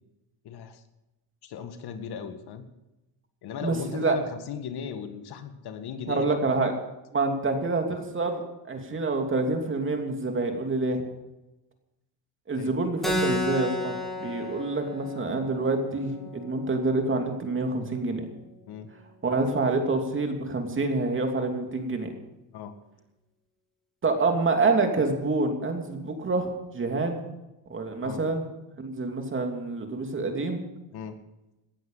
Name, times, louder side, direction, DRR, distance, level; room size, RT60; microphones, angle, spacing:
voice 1, 0.4-0.8 1.4-2.7 3.4-6.7 12.6-12.7 18.7-18.9 22.5-22.7 28.0-28.2 30.9-31.2, left 7 dB, 65° left, 8 dB, 1.9 m, -37 dB
voice 2, 3.6-4.2 6.1-6.7 7.1-11.0 12.5-18.2 19.2-22.1 24.0-27.2 27.7-28.4 28.8-30.6, right 3 dB, 30° right, 4 dB, 2.8 m, -27 dB
Keyboard (musical), 13.0-18.1, left 1 dB, ahead, 3.4 m, -33 dB
18.5 x 12.5 x 5.7 m, 0.97 s
cardioid pair, 130°, 42 cm